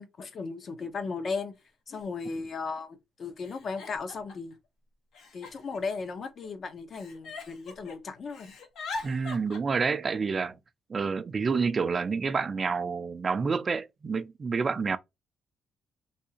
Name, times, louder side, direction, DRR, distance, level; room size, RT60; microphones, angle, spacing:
voice 1, 0.0-1.5 1.9-4.5 5.3-8.5, left 4 dB, 50° left, 0.7 m, -36 dB
Giggle, 1.9-2.0 2.3-2.8 3.4-4.5 5.1-6.5 6.9-8.0 8.2-9.6, left 3 dB, 75° left, 1.0 m, -42 dB
voice 2, 9.0-10.6 10.9-15.0, right 5 dB, 35° right, 0.4 m, -28 dB
3.5 x 2.7 x 2.7 m
cardioid pair, 90°, 0 cm